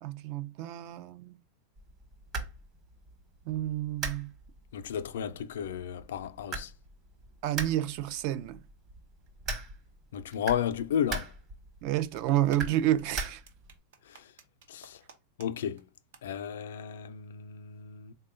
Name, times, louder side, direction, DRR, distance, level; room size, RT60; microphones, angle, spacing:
voice 1, 0.0-1.4 3.5-4.3 7.4-8.6 11.8-13.4, right 13 dB, 50° right, 0.4 m, -30 dB
sound 1, 1.8-13.8, right 3 dB, 35° right, 1.1 m, -42 dB
voice 2, 4.7-6.7 10.1-11.3 14.1-14.3 14.7-15.0 15.4-15.8 16.2-18.1, left 9 dB, 85° left, 0.3 m, -33 dB
sound 2, 12.3-15.5 15.8-15.9 16.1-16.2, right 6 dB, 80° right, 0.8 m, -53 dB
3.7 x 2.2 x 3.6 m
supercardioid pair, 140°, 0 cm